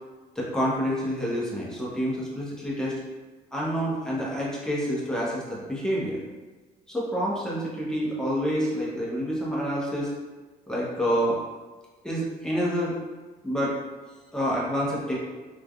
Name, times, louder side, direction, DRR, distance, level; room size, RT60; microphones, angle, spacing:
voice 1, 0.4-3.0 3.5-6.2 6.9-10.1 10.7-11.4 12.0-13.0 13.4-13.7 14.3-15.2, equal, 5° left, -6 dB, 0.8 m, -28 dB
3.2 x 2.4 x 2.2 m, 1.3 s
cardioid pair, 110°, 17 cm